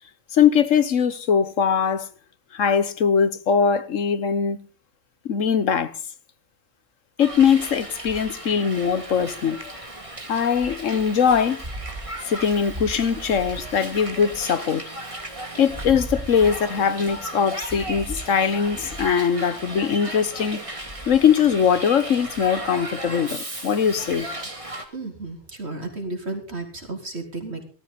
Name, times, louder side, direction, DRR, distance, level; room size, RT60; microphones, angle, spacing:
voice 1, 0.3-2.1 2.5-4.6 5.2-5.9 7.2-9.6 10.3-11.6 12.3-14.8 15.6-20.6 21.1-24.3, left 7 dB, 75° left, 1.5 m, -21 dB
Hiss, 7.2-24.9, right 1 dB, 25° right, 2.6 m, -35 dB
voice 2, 24.9-27.7, right 2 dB, 55° right, 4.2 m, -33 dB
18.0 x 14.0 x 4.1 m
omnidirectional pair, 1.3 m